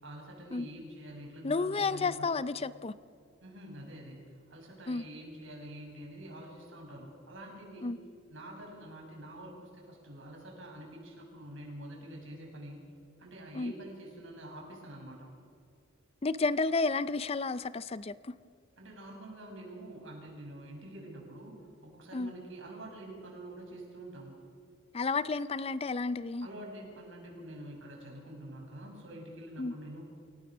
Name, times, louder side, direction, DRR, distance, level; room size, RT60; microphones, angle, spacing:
voice 1, 0.0-2.3 3.4-7.9 8.3-12.8 13.2-15.3 18.8-24.4 26.4-30.0, right 1 dB, 70° right, 0 dB, 6.4 m, -46 dB
voice 2, 1.4-2.9 4.9-5.0 7.8-8.0 13.5-13.7 16.2-18.3 22.1-22.3 24.9-26.5 29.6-29.7, left 3 dB, 30° left, 15 dB, 0.5 m, -31 dB
28.5 x 17.0 x 6.2 m, 2.3 s
head